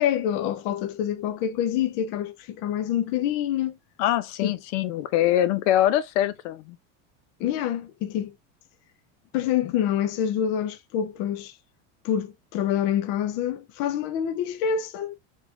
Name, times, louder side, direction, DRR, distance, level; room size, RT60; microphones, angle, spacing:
voice 1, 0.0-3.8 4.4-4.5 7.4-8.3 9.3-11.5 12.0-15.2, left 9 dB, 35° left, 0.4 m, -26 dB
voice 2, 4.0-6.8, left 12 dB, 70° left, 0.8 m, -23 dB
4.5 x 3.5 x 2.6 m
cardioid pair, 175°, 37 cm